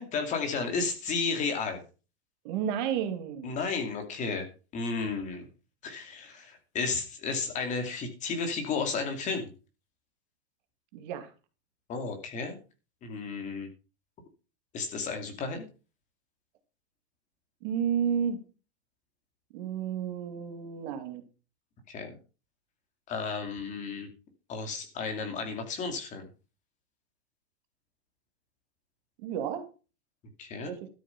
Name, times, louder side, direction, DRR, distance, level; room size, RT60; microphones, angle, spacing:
voice 1, 0.0-1.8 3.4-4.5 4.7-5.5 5.8-9.5 11.9-12.6 13.0-13.7 14.7-15.6 21.9-22.1 23.1-24.1 24.5-26.3 30.4-30.7, left 4 dB, 20° left, 6 dB, 2.5 m, -33 dB
voice 2, 2.4-3.5 10.9-11.3 17.6-18.4 19.5-21.2 29.2-29.7 30.6-30.9, right 8 dB, 45° right, 8 dB, 2.2 m, -31 dB
13.0 x 7.2 x 5.8 m, 0.33 s
supercardioid pair, 165°, 33 cm